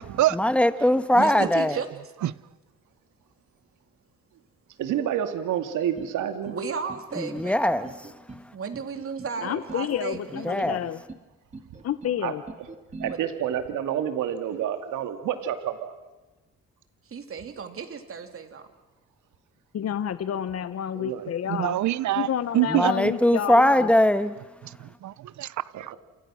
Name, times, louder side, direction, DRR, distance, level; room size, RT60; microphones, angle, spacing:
voice 1, 0.3-1.8 7.2-8.1 10.3-10.8 22.7-24.3, left 1 dB, 5° left, 1.5 m, -21 dB
voice 2, 1.1-1.9 6.4-7.9 8.5-10.5 13.1-13.2 17.1-18.7, right 5 dB, 45° right, 3.2 m, -34 dB
voice 3, 4.8-6.6 9.4-9.6 12.2-12.3 13.0-15.9 20.9-21.3 25.7-25.9, right 10 dB, 85° right, 2.3 m, -29 dB
sound 1, 6.0-6.6 6.9-7.5 7.8-8.4 8.7-9.3 9.7-10.3 10.6-11.2 11.5-12.1 12.5-13.1, right 3 dB, 20° right, 2.5 m, -42 dB
voice 4, 9.4-11.0 11.8-12.4 19.7-21.8 22.2-23.9, left 9 dB, 55° left, 1.0 m, -29 dB
voice 5, 21.5-22.3 22.5-22.9 24.6-25.9, right 14 dB, 70° right, 0.9 m, -25 dB
30.0 x 28.0 x 6.3 m
cardioid pair, 90°, 30 cm